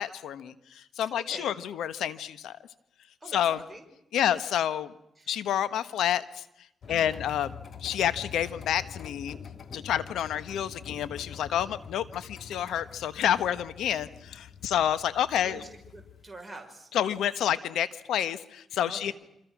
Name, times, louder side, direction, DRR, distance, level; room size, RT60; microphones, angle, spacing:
voice 1, 0.0-2.6 3.3-3.6 4.1-4.9 5.3-6.4 6.9-7.5 7.8-9.4 9.7-15.6 16.9-19.1, left 10 dB, 85° left, 14 dB, 1.3 m, -29 dB
voice 2, 1.1-1.6 3.2-3.8 5.2-5.3 6.9-7.2 15.4-16.9 18.9-19.1, right 2 dB, 10° right, 1 dB, 5.8 m, -45 dB
sound 1, 6.8-16.3, left 7 dB, 60° left, 1.7 m, -45 dB
27.5 x 26.0 x 6.2 m, 0.80 s
cardioid pair, 65°, 0 cm